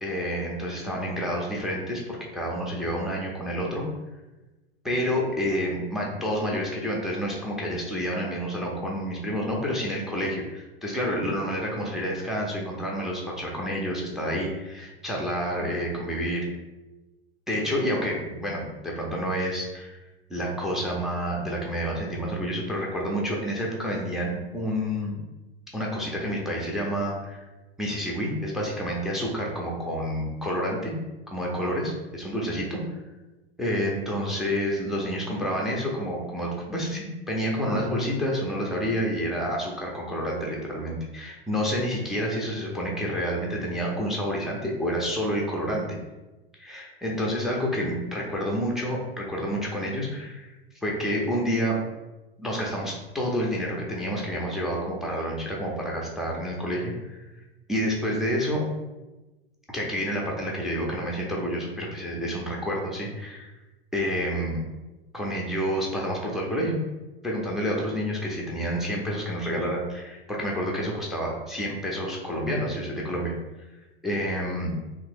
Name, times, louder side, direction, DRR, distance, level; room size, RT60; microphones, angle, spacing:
voice 1, 0.0-3.8 4.8-16.5 17.5-20.0 20.3-25.1 25.7-27.5 27.8-30.9 31.3-32.8 33.6-45.9 46.6-50.5 50.8-51.8 52.4-57.2 57.7-58.7 59.7-63.5 63.9-64.6 65.1-66.8 67.2-73.3 74.0-74.7, equal, ahead, -2 dB, 0.3 m, -29 dB
2.7 x 2.0 x 3.2 m, 1.1 s
hypercardioid pair, 95°, 31 cm